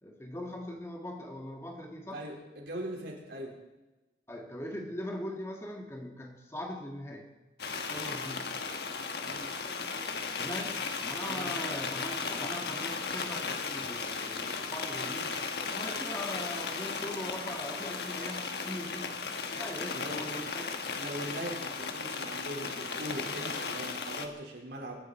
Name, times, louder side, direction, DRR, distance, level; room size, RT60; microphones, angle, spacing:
voice 1, 0.0-2.2 4.3-7.3 7.8-8.4 10.3-15.4 15.7-19.1 19.5-20.8, left 1 dB, 15° left, 2 dB, 1.6 m, -41 dB
voice 2, 2.1-3.5 9.2-9.5 11.2-11.5 19.9-20.3 20.9-25.0, right 1 dB, 75° right, -2 dB, 4.4 m, -40 dB
sound 1, 7.6-24.3, left 4 dB, 70° left, 1.4 m, -36 dB
24.0 x 11.5 x 4.3 m, 1.1 s
head